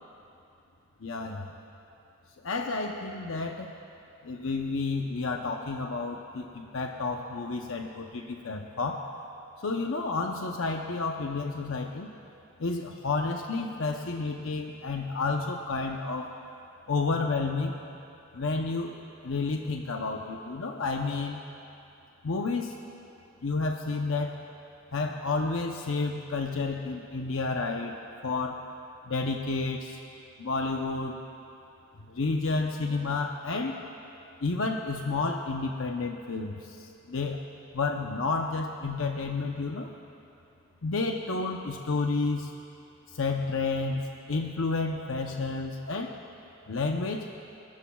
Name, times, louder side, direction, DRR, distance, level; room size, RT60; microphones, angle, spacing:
voice 1, 1.0-1.5 2.4-3.7 4.2-9.1 9.6-12.1 12.6-16.3 16.9-17.7 18.3-19.0 19.2-21.4 22.2-22.7 23.4-24.4 24.9-28.0 28.2-28.6 29.1-30.0 30.4-31.2 32.1-33.8 34.4-37.4 37.7-39.9 40.8-42.5 43.1-46.1 46.7-47.3, left 3 dB, 80° left, 2 dB, 0.7 m, -30 dB
28.5 x 13.0 x 2.3 m, 2.8 s
head